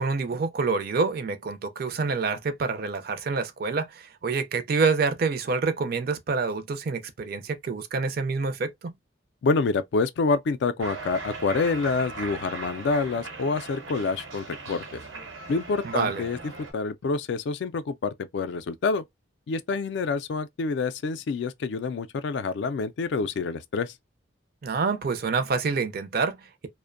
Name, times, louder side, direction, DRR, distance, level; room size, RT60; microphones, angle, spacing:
voice 1, 0.0-8.9 15.8-16.2 24.6-26.7, right 4 dB, 50° right, 0.4 m, -27 dB
voice 2, 9.4-15.0 15.5-16.4 16.7-19.0 19.5-23.9, left 4 dB, 60° left, 0.3 m, -27 dB
Cheering, 10.8-16.7, right 3 dB, 85° right, 1.0 m, -39 dB
2.5 x 2.1 x 2.4 m
head